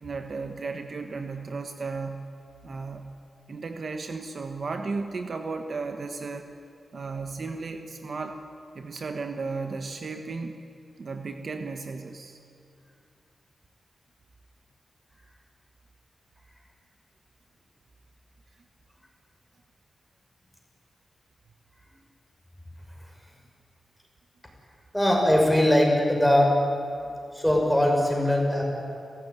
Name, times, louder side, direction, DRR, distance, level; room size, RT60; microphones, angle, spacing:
voice 1, 0.0-2.3 2.6-3.1 3.5-6.5 6.9-8.4 8.7-10.6 11.0-12.4, right 4 dB, 55° right, 6 dB, 1.4 m, -34 dB
voice 2, 24.9-26.6 27.3-28.6, left 1 dB, ahead, 0 dB, 6.0 m, -21 dB
29.5 x 15.5 x 9.8 m, 2.6 s
wide cardioid pair, 120°, 0 cm